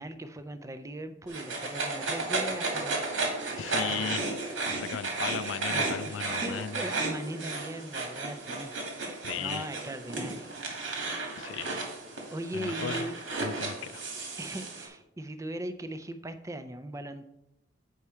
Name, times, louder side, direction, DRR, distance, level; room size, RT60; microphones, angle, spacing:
voice 1, 0.0-3.0 3.5-3.7 5.3-10.5 12.3-13.2 14.4-17.2, right 1 dB, 15° right, 0.4 m, -39 dB
sound 1, 1.3-14.9, right 3 dB, 85° right, 1.9 m, -34 dB
voice 2, 3.5-4.4 4.7-6.8 9.2-9.7 11.4-11.9 12.5-13.0 13.4-14.0, left 8 dB, 80° left, 0.3 m, -36 dB
8.2 x 4.8 x 4.4 m
head